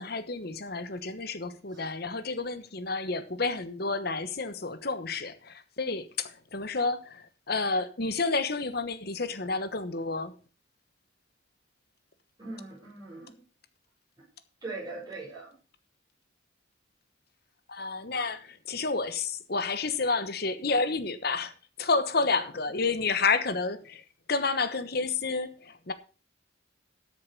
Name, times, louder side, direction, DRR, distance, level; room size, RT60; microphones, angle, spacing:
voice 1, 0.0-10.3 17.7-21.5 21.8-25.9, left 4 dB, 50° left, 1.1 m, -30 dB
voice 2, 12.4-13.4 14.6-15.5, right 3 dB, 20° right, 5.8 m, -40 dB
13.0 x 6.8 x 5.3 m
head